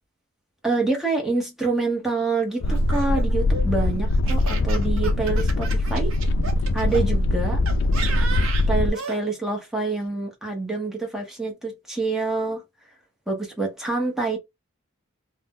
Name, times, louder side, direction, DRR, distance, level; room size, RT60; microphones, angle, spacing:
voice 1, 0.6-6.1 6.7-7.6 8.7-12.6 13.3-14.4, right 3 dB, ahead, 0.8 m, -26 dB
sound 1, 2.6-8.9, left 2 dB, 55° left, 0.3 m, -22 dB
Laughter, 2.6-7.0 7.7-9.2, right 5 dB, 65° right, 0.6 m, -34 dB
2.6 x 2.1 x 3.5 m
head